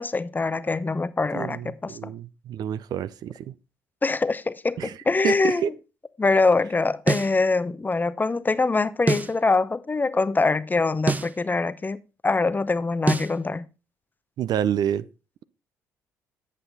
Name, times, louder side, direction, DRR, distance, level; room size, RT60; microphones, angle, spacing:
voice 1, 0.0-2.1 4.0-5.6 6.2-12.0 12.2-13.6, left 3 dB, 20° left, 0.7 m, -24 dB
voice 2, 1.3-3.5 4.8-5.0 5.2-5.7 14.4-15.1, right 10 dB, 55° right, 0.5 m, -28 dB
sound 1, 7.1-7.4 9.1-9.4 11.1-11.4 13.1-13.4, right 3 dB, 20° right, 0.7 m, -24 dB
8.2 x 7.9 x 4.0 m
hypercardioid pair, 50°, 8 cm